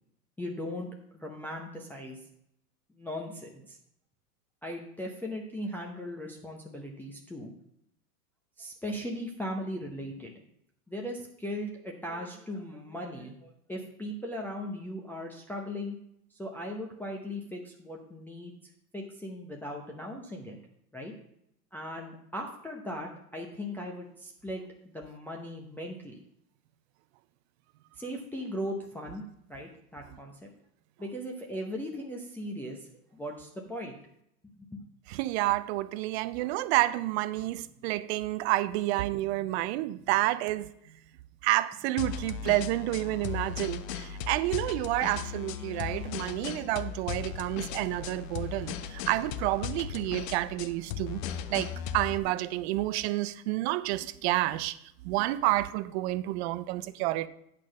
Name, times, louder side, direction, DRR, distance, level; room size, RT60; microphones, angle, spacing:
voice 1, 0.4-2.2 2.9-3.8 4.6-7.5 8.6-10.3 10.9-16.0 16.3-18.5 18.9-20.6 20.9-21.1 21.7-26.2 28.0-29.2 29.5-30.5 31.0-34.0 34.6-34.8, equal, 5° left, 0.7 m, -38 dB
voice 2, 35.1-40.7 41.4-51.2 51.5-54.8 55.0-57.3, right 17 dB, 45° right, 0.5 m, -29 dB
sound 1, 42.0-52.2, left 8 dB, 50° left, 0.7 m, -37 dB
8.9 x 4.3 x 6.3 m
hypercardioid pair, 115°, 49 cm